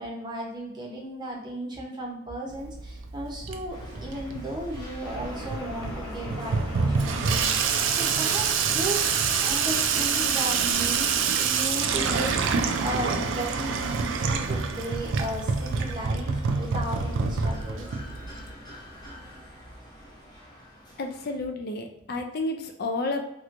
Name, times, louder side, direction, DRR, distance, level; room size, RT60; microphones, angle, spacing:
voice 1, 0.0-17.9, right 1 dB, 20° right, -1 dB, 0.7 m, -35 dB
Water tap faucet / Sink (filling or washing), 2.5-18.5, right 5 dB, 70° right, 0.4 m, -27 dB
sound 1, 3.7-21.3, equal, 20° left, 0.8 m, -46 dB
sound 2, 5.0-11.2, left 1 dB, 80° left, 1.2 m, -40 dB
voice 2, 21.0-23.2, left 2 dB, 50° left, 4 dB, 0.4 m, -31 dB
3.3 x 3.0 x 2.5 m, 0.87 s
head